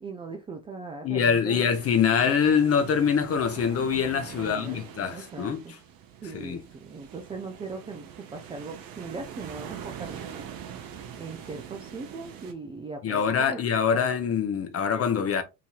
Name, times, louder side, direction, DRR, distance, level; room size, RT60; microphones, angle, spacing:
voice 1, 0.0-1.6 4.3-5.7 6.2-10.5 11.2-13.6 14.0-14.1, right 4 dB, 15° right, 0.3 m, -39 dB
voice 2, 1.0-5.6 6.3-6.6 13.0-15.4, left 7 dB, 30° left, 0.7 m, -24 dB
sound 1, 1.7-12.5, right 8 dB, 45° right, 0.7 m, -43 dB
2.9 x 2.7 x 2.3 m
hypercardioid pair, 60°, 48 cm